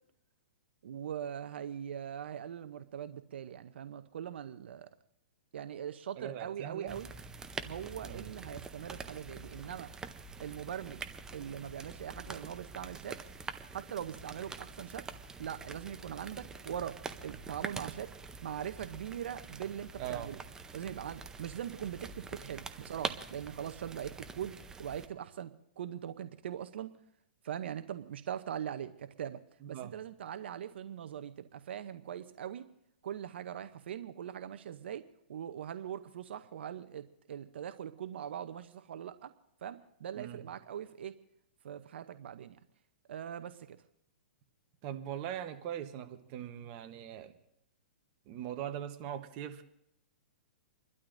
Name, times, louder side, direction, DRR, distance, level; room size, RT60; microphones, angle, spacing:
voice 1, 0.8-4.9 5.5-7.1 7.6-9.9 10.4-11.0 11.3-13.2 13.7-15.1 15.4-18.1 18.4-20.4 20.7-26.9 27.4-29.4 29.7-32.7 33.0-35.0 35.3-39.3 39.6-41.2 41.6-42.6 43.1-43.8, right 9 dB, 70° right, 10 dB, 0.7 m, -41 dB
voice 2, 6.2-7.0 8.0-8.3 20.0-20.4 29.6-29.9 40.2-40.5 44.8-47.3 48.3-49.6, right 10 dB, 35° right, 7 dB, 1.0 m, -41 dB
sound 1, 6.9-25.1, right 4 dB, 10° right, 0.7 m, -45 dB
30.0 x 12.0 x 2.6 m, 0.77 s
hypercardioid pair, 145°, 6 cm